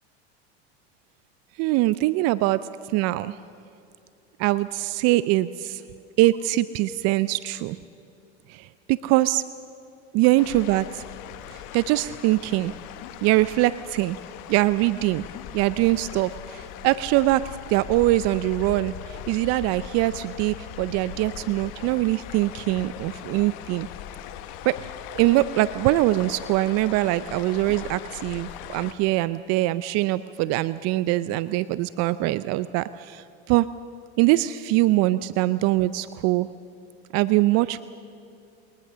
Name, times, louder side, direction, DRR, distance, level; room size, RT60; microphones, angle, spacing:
voice 1, 1.6-3.4 4.4-5.8 6.2-7.8 8.5-9.4 10.1-11.0 11.5-12.7 13.2-14.2 14.5-15.2 15.5-23.9 24.6-24.8 25.1-33.7 34.2-36.5 37.1-37.8, right 17 dB, 50° right, 16 dB, 0.6 m, -23 dB
sound 1, 10.4-28.9, left 11 dB, 60° left, 1.3 m, -40 dB
22.5 x 19.5 x 6.8 m, 2.6 s
hypercardioid pair, 95°, 32 cm